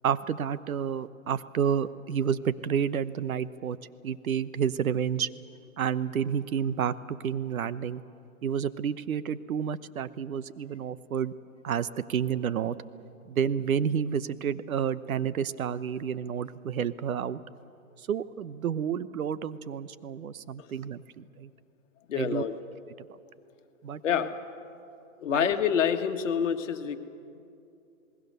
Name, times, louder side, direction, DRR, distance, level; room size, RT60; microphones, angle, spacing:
voice 1, 0.0-3.8 4.0-5.3 5.8-8.0 8.4-11.3 11.6-12.8 13.3-17.4 18.0-21.5 22.2-22.4 23.8-24.3 25.3-25.5, right 8 dB, 80° right, 16 dB, 1.0 m, -30 dB
voice 2, 22.1-22.6 24.0-24.3 25.2-27.0, left 8 dB, 60° left, 7 dB, 1.6 m, -27 dB
28.0 x 20.0 x 6.8 m, 2.6 s
hypercardioid pair, 155°, 41 cm